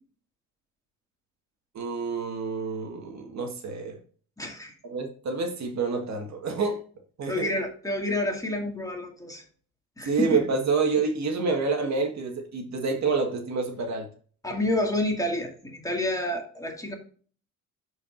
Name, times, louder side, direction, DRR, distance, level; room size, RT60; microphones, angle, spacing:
voice 1, 1.7-4.0 4.8-6.8 7.2-7.6 10.0-14.1, right 4 dB, 55° right, 3 dB, 1.7 m, -28 dB
voice 2, 4.4-4.7 7.3-9.4 10.0-10.4 14.4-16.9, left 1 dB, 10° left, 1 dB, 2.1 m, -29 dB
11.5 x 4.8 x 2.5 m, 0.44 s
cardioid pair, 95°, 34 cm